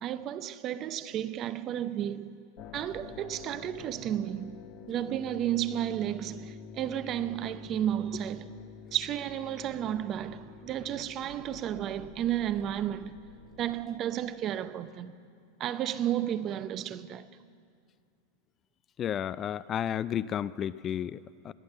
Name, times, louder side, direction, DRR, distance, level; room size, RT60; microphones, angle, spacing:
voice 1, 0.0-2.3 2.7-4.5 4.9-8.6 8.9-13.1 13.6-15.1 15.6-17.3, right 11 dB, 40° right, 0.6 m, -32 dB
sound 1, 2.6-13.8, left 6 dB, 50° left, 1.1 m, -48 dB
voice 2, 19.0-21.5, left 9 dB, 35° left, 0.3 m, -32 dB
20.0 x 9.6 x 7.5 m
hypercardioid pair, 110°, 0 cm